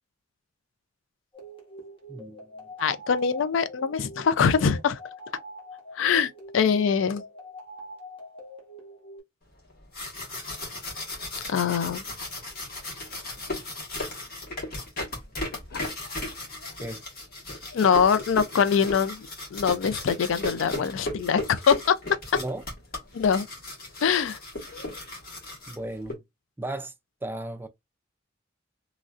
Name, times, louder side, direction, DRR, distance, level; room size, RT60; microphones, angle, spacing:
sound 1, 1.3-9.2, equal, 30° left, 1.1 m, -44 dB
voice 1, 2.1-2.4 16.8-17.0 22.3-22.6 25.7-26.2 26.6-26.9 27.2-27.7, right 1 dB, 10° right, 0.3 m, -34 dB
voice 2, 2.8-5.0 6.0-7.2 11.5-12.0 15.7-15.8 17.7-22.0 23.1-23.4 24.0-24.4, left 6 dB, 75° left, 0.4 m, -23 dB
sound 2, 9.7-26.1, left 2 dB, 50° left, 1.5 m, -36 dB
3.1 x 2.5 x 2.4 m
head